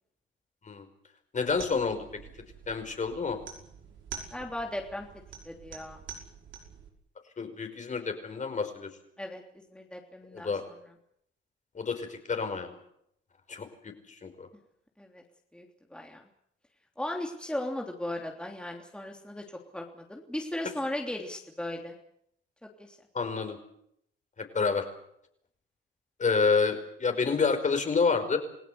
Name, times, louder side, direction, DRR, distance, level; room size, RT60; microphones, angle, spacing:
voice 1, 1.3-2.1 2.7-3.4 7.4-8.9 10.3-10.6 11.7-12.8 13.5-14.5 23.1-23.6 24.4-24.9 26.2-28.4, left 5 dB, 40° left, 6 dB, 5.3 m, -28 dB
sound 1, 1.5-6.9, right 7 dB, 75° right, 5.8 m, -46 dB
voice 2, 4.3-5.1 5.4-6.0 9.2-9.4 9.7-10.5 15.0-15.2 15.5-16.2 17.0-19.4 19.7-22.0 22.6-23.0, left 1 dB, 5° left, 1 dB, 3.3 m, -37 dB
28.5 x 17.0 x 8.1 m, 0.74 s
cardioid pair, 90°, 20 cm